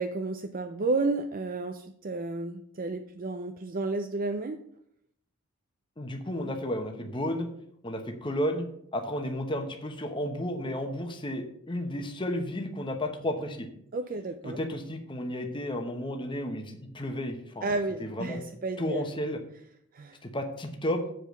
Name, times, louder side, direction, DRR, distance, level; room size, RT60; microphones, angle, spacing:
voice 1, 0.0-4.6 13.9-14.6 17.6-19.1 19.9-20.2, right 3 dB, 40° right, 6 dB, 0.4 m, -32 dB
voice 2, 6.0-7.5 7.8-8.7 8.9-13.7 14.4-17.7 18.0-18.4 18.8-19.4 20.2-21.0, left 1 dB, 20° left, 4 dB, 0.9 m, -32 dB
7.6 x 5.1 x 6.6 m, 0.68 s
head